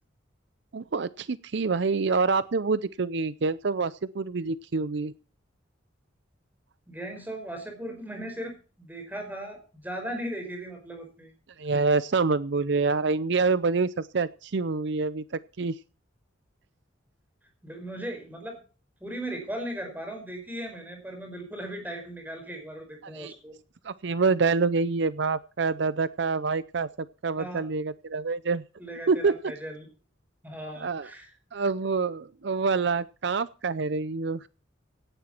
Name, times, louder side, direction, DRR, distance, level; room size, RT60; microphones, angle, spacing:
voice 1, 0.7-5.1 11.6-15.2 15.6-15.8 23.1-23.3 23.8-26.9 27.2-28.6 29.1-29.5 30.8-31.1 31.5-34.5, right 4 dB, 65° right, 16 dB, 0.6 m, -26 dB
voice 2, 6.9-11.3 17.6-18.6 19.0-23.5 27.4-27.7 28.8-29.9 30.4-31.3, right 1 dB, 10° right, 4 dB, 5.1 m, -37 dB
17.5 x 11.0 x 4.5 m, 0.36 s
head